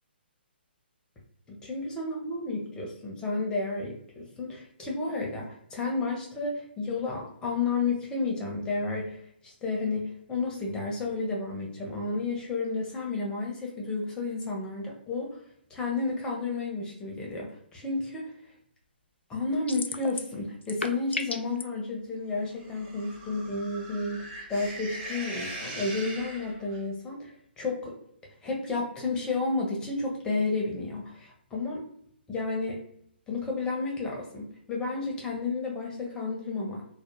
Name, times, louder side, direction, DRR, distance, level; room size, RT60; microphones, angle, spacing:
voice 1, 1.5-9.2 9.4-15.4 15.7-18.2 19.3-27.3 27.6-28.0 28.4-31.8 32.3-32.8 33.3-37.0, left 3 dB, 15° left, -1 dB, 0.6 m, -31 dB
sound 1, 19.7-20.4 20.6-21.6, left 3 dB, 85° left, 0.3 m, -33 dB
sound 2, 22.5-26.8, right 1 dB, 35° right, 0.8 m, -41 dB
2.3 x 2.1 x 3.0 m, 0.68 s
figure-of-eight pair, 135°, 6 cm